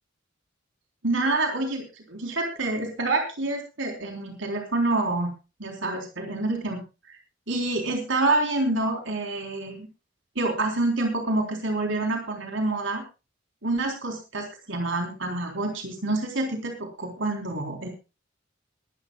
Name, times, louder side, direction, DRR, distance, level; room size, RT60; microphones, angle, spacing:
voice 1, 1.0-5.3 5.6-7.2 7.5-9.9 10.4-13.0 13.6-17.9, right 2 dB, 75° right, 3 dB, 3.9 m, -27 dB
21.0 x 13.0 x 2.4 m, 0.30 s
head